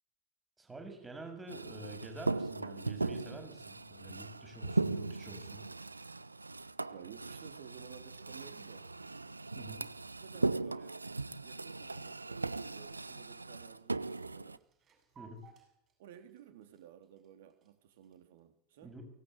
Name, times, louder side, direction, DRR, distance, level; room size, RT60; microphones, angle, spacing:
voice 1, 0.6-5.6 9.6-9.8 15.2-15.5 18.8-19.1, right 2 dB, 10° right, 5 dB, 6.9 m, -48 dB
sound 1, 1.5-14.6, right 3 dB, 80° right, 0.8 m, -38 dB
voice 2, 6.9-8.9 9.7-11.0 11.4-14.6 16.0-19.0, right 9 dB, 55° right, 7 dB, 3.6 m, -54 dB
sound 2, 14.4-18.4, right 6 dB, 30° right, 7.9 m, -64 dB
24.0 x 19.0 x 8.2 m, 0.73 s
figure-of-eight pair, 90°, 0 cm